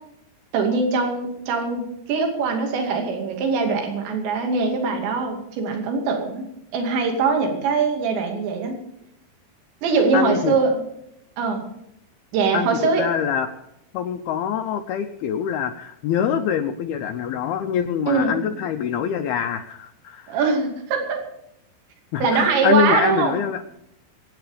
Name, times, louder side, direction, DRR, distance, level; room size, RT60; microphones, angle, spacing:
voice 1, 0.5-6.4 6.7-8.8 9.8-10.8 11.4-11.6 12.3-13.0 18.1-18.4 20.3-21.2 22.2-23.4, right 4 dB, 70° right, 3 dB, 4.7 m, -22 dB
voice 2, 10.1-10.6 12.5-13.5 13.9-20.3 22.1-23.6, left 8 dB, 80° left, 6 dB, 2.3 m, -24 dB
24.0 x 9.5 x 5.1 m, 0.80 s
omnidirectional pair, 5.5 m